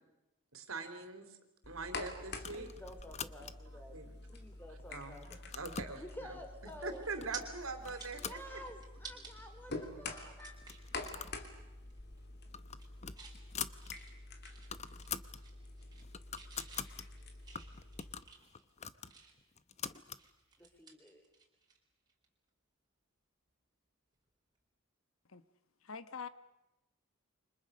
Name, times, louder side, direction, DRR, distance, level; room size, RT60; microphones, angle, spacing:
voice 1, 0.5-1.4 1.7-2.7 3.9-4.1 4.9-5.2 5.5-6.4 6.8-8.4, right 3 dB, 75° right, 7 dB, 3.6 m, -42 dB
sound 1, 1.6-18.1, left 2 dB, 50° left, 3.0 m, -48 dB
sound 2, 2.4-3.8 4.3-4.8 5.1-6.0 6.7-6.8 7.2-7.5 7.8-9.0 9.4-9.5 9.7-9.8 10.5-11.4 11.7-11.9 12.3-14.0 14.3-14.4 14.6-15.4 15.8-17.1 17.5-20.3, left 7 dB, 30° left, 0.8 m, -45 dB
voice 2, 2.6-4.0 4.3-5.4 5.9-7.0 8.1-10.6 20.6-21.3, equal, 10° left, 5 dB, 3.6 m, -51 dB
sound 3, 6.3-6.5 6.9-7.4 7.8-9.3 9.8-9.9 10.4-10.9 11.3-11.5 11.8-12.3 12.6-13.4 13.8-15.1 15.4-16.1 16.3-19.5 19.9-21.8 22.1-22.3 24.1-24.3, right 5 dB, 20° right, 4.2 m, -53 dB
voice 3, 25.8-26.3, left 6 dB, 75° left, 13 dB, 1.3 m, -44 dB
29.0 x 25.5 x 6.5 m, 0.94 s
head